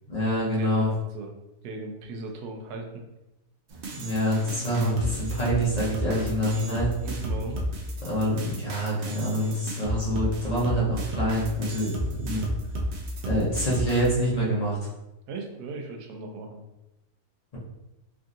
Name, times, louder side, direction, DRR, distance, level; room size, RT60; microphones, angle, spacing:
voice 1, 0.1-0.9 4.0-6.9 8.0-12.4 13.2-14.8, equal, 40° left, -6 dB, 0.6 m, -26 dB
voice 2, 0.6-1.3 1.6-3.0 7.0-7.6 12.3-12.5 15.3-16.6, right 3 dB, 80° right, 3 dB, 1.1 m, -37 dB
sound 1, 3.7-14.1, right 1 dB, 65° right, 0.7 m, -33 dB
3.5 x 2.5 x 2.5 m, 0.95 s
omnidirectional pair, 1.6 m